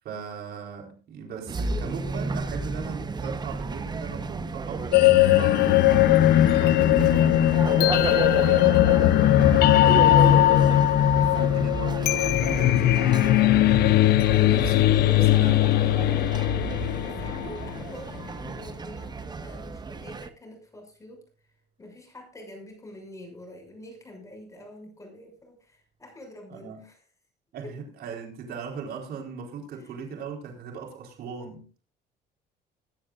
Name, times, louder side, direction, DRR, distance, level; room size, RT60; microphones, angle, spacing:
voice 1, 0.0-6.0 6.6-8.8 11.1-16.3 26.5-26.8 27.5-31.7, right 5 dB, 65° right, 4.3 m, -39 dB
sound 1, 1.5-20.3, right 4 dB, 25° right, 1.1 m, -33 dB
sound 2, 4.9-17.9, left 14 dB, 70° left, 0.7 m, -19 dB
sound 3, 7.6-13.6 14.0-14.2 14.7-14.8, right 4 dB, 45° right, 7.5 m, -40 dB
voice 2, 11.1-11.5 16.9-21.2 21.8-27.0 27.6-27.8 29.8-29.9, left 1 dB, 20° left, 6.4 m, -45 dB
21.5 x 10.5 x 2.5 m
cardioid pair, 110°, 17 cm